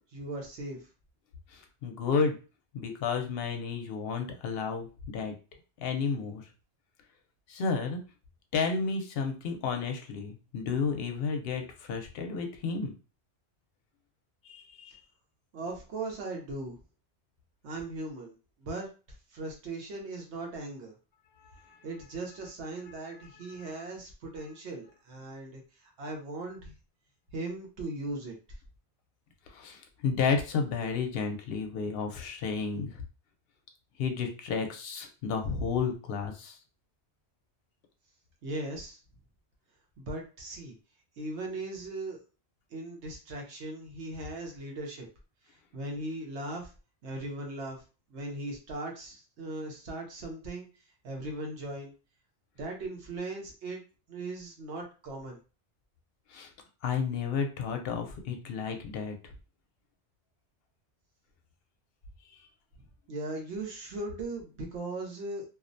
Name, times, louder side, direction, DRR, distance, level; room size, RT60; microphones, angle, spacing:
voice 1, 0.1-0.9 15.5-16.8 17.6-18.9 19.3-20.9 21.8-26.7 27.3-28.4 38.4-39.0 40.0-40.8 41.2-42.2 42.7-45.1 45.7-46.7 47.0-47.8 48.1-50.7 51.0-51.9 52.6-53.8 54.1-55.4 63.1-65.4, right 2 dB, 90° right, 1 dB, 1.0 m, -38 dB
voice 2, 1.5-2.4 2.7-5.4 5.8-6.5 7.5-8.0 8.5-12.9 14.4-15.0 21.4-21.9 22.9-23.0 23.5-23.8 29.5-33.0 34.0-36.6 56.3-56.5 56.8-59.2 62.3-62.4, left 5 dB, 65° left, 4 dB, 0.7 m, -32 dB
2.4 x 2.1 x 2.5 m, 0.34 s
omnidirectional pair, 1.1 m